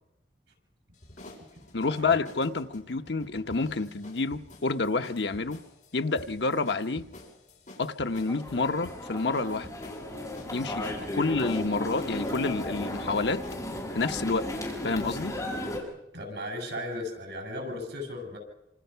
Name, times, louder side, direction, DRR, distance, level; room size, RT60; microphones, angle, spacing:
sound 1, 0.9-13.7, left 1 dB, 45° left, 6.4 m, -50 dB
voice 1, 1.7-5.6 5.9-7.1 7.8-9.7 10.5-13.4 13.9-14.5 14.8-15.4, left 3 dB, 75° left, 1.0 m, -28 dB
sound 2, 8.1-15.8, left 1 dB, 15° left, 6.3 m, -35 dB
voice 2, 16.1-18.4, left 1 dB, 85° right, 6.9 m, -36 dB
27.0 x 26.5 x 5.7 m
head